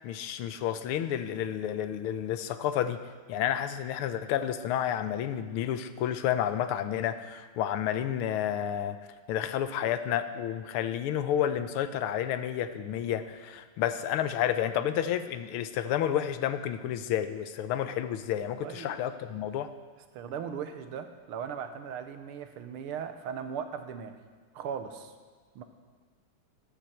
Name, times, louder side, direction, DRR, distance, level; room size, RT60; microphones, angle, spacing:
voice 1, 0.0-3.0 3.3-9.0 9.3-19.7, left 10 dB, 85° left, 11 dB, 1.5 m, -30 dB
voice 2, 18.6-19.0 20.1-24.2 24.5-25.1 25.6-25.7, right 7 dB, 80° right, 8 dB, 1.7 m, -38 dB
13.0 x 12.5 x 4.4 m, 1.5 s
omnidirectional pair, 2.4 m